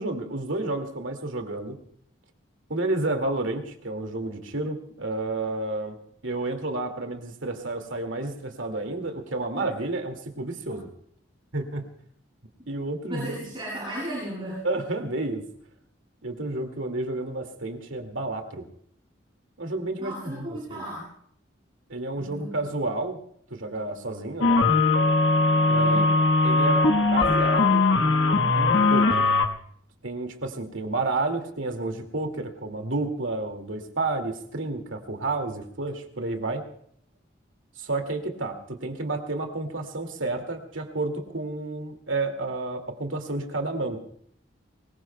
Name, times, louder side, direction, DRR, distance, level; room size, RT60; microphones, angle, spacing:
voice 1, 0.0-1.8 2.7-6.0 6.2-10.9 11.5-11.9 12.7-13.4 14.6-15.5 16.2-18.6 19.6-20.8 21.9-23.2 23.5-24.6 25.7-27.8 28.5-29.3 30.0-36.6 37.8-44.0, right 2 dB, 90° right, 5 dB, 2.3 m, -30 dB
voice 2, 13.1-14.7 20.0-21.1 22.2-22.6 25.8-26.1, right 1 dB, 25° right, -6 dB, 7.3 m, -35 dB
sound 1, 24.4-29.5, left 3 dB, 75° left, 1.4 m, -20 dB
23.5 x 21.5 x 2.3 m, 0.66 s
head